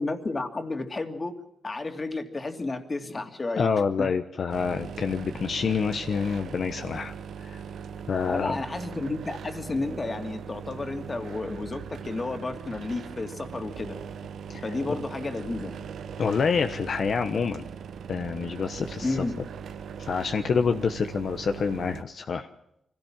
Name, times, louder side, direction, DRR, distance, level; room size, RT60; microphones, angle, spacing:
voice 1, 0.0-3.7 4.0-4.1 8.3-14.0 14.6-15.8 19.0-19.4, left 3 dB, 30° left, 6 dB, 2.6 m, -32 dB
voice 2, 3.6-7.6 8.1-8.6 14.5-14.7 16.2-17.6 18.1-19.2 20.0-22.5, left 5 dB, 65° left, 7 dB, 1.1 m, -27 dB
sound 1, 4.5-22.0, right 7 dB, 85° right, 1.1 m, -40 dB
24.5 x 17.5 x 7.5 m, 0.79 s
cardioid pair, 90°, 0 cm